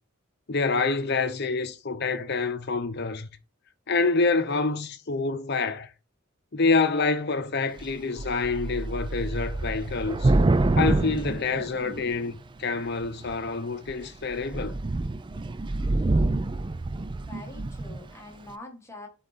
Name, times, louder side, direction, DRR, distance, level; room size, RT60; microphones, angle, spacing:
voice 1, 0.5-3.3 3.9-5.9 6.5-10.3 10.8-14.8, left 4 dB, 50° left, 0.8 m, -27 dB
Thunder / Rain, 7.8-12.3 13.0-13.5 13.9-14.0 14.3-18.1, right 2 dB, 20° right, 0.3 m, -26 dB
voice 2, 17.2-19.1, left 2 dB, 15° left, 1.5 m, -44 dB
8.3 x 3.9 x 4.2 m
head